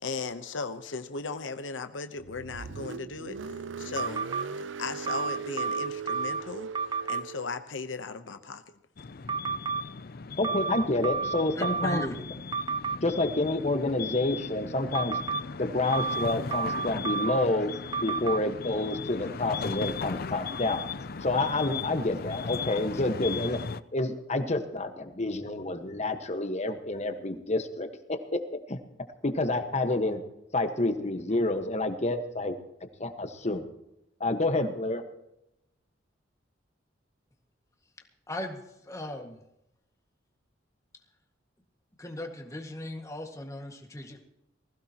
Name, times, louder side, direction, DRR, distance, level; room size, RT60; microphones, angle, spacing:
voice 1, 0.0-4.3 4.8-6.7 7.1-8.6, left 4 dB, 85° left, 9 dB, 1.0 m, -37 dB
Car, 2.2-7.6, right 5 dB, 80° right, 0.5 m, -39 dB
sound 1, 4.0-4.4 5.1-6.4 6.7-7.2 9.3-9.8 10.4-12.1 12.5-13.0 14.9-15.4 15.9-17.5 17.9-18.4, right 5 dB, 25° right, 0.6 m, -30 dB
sound 2, 9.0-23.8, left 5 dB, 55° left, 0.6 m, -37 dB
voice 2, 10.4-12.0 13.0-15.2 15.6-17.7 18.0-20.9 21.2-23.6 23.9-28.2 28.7-28.8 29.2-30.2 30.5-32.6 33.0-33.6 34.2-35.0, left 2 dB, 35° left, 7 dB, 1.5 m, -28 dB
voice 3, 11.6-12.2 38.3-39.4 42.0-44.2, left 1 dB, 15° left, 2 dB, 1.9 m, -38 dB
20.0 x 16.0 x 3.0 m, 0.86 s
head